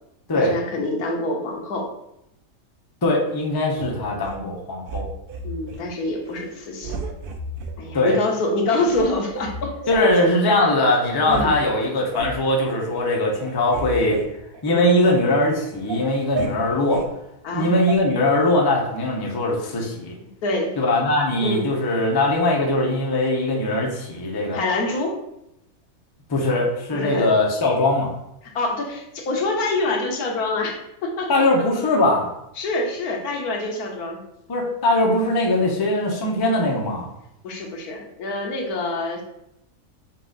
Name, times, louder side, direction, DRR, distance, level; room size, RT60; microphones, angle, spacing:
voice 1, 0.3-1.9 5.4-7.0 7.8-10.1 11.2-11.5 14.7-14.9 17.4-17.7 20.4-20.7 21.4-21.7 24.5-25.2 26.9-27.3 28.5-31.5 32.6-34.2 37.4-39.2, left 2 dB, 80° left, 1 dB, 1.3 m, -26 dB
voice 2, 3.0-5.0 7.9-8.2 9.9-14.2 14.6-17.0 17.5-20.1 20.8-24.6 26.3-28.1 31.3-32.3 34.5-37.1, left 1 dB, 25° left, -1 dB, 0.5 m, -21 dB
sound 1, 3.7-4.4 4.9-5.8 6.3-6.5 6.8-7.8 8.3-8.4 8.9-10.0 10.6-10.7 11.0-11.5 11.8-12.4 12.9-13.1 13.4-15.2 15.6-17.1 17.9-18.0, right 3 dB, 85° right, 0.4 m, -33 dB
5.8 x 2.5 x 3.7 m, 0.82 s
omnidirectional pair, 1.6 m